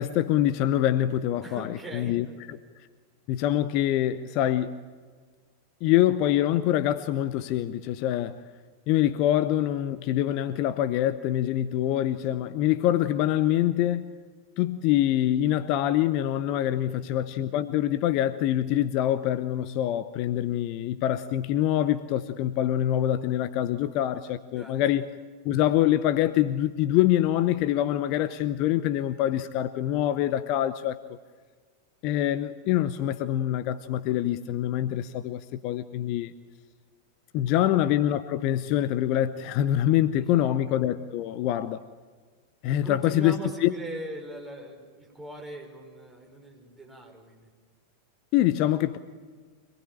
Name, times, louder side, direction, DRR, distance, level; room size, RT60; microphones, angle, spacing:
voice 1, 0.0-2.3 3.3-4.8 5.8-8.4 8.9-14.1 14.6-25.1 25.4-31.0 32.0-36.3 37.3-41.8 42.6-43.7 48.3-49.0, left 12 dB, 45° left, 13 dB, 0.8 m, -25 dB
voice 2, 1.4-2.6 16.7-17.1 24.5-24.8 37.5-37.7 40.2-40.6 42.8-47.5, right 1 dB, 10° right, 1 dB, 5.5 m, -41 dB
25.5 x 19.5 x 8.8 m, 1.5 s
figure-of-eight pair, 90°, 0 cm